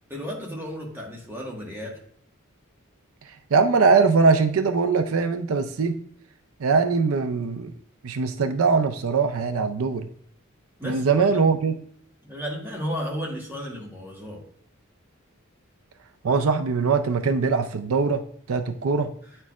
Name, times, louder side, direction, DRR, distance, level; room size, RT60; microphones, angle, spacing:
voice 1, 0.1-2.0 10.8-11.4 12.2-14.4, equal, 10° right, -2 dB, 1.5 m, -33 dB
voice 2, 3.5-6.0 6.6-7.7 8.0-10.1 10.8-11.8 16.2-18.2 18.5-19.1, right 4 dB, 75° right, 8 dB, 0.5 m, -21 dB
9.1 x 4.4 x 2.4 m, 0.62 s
head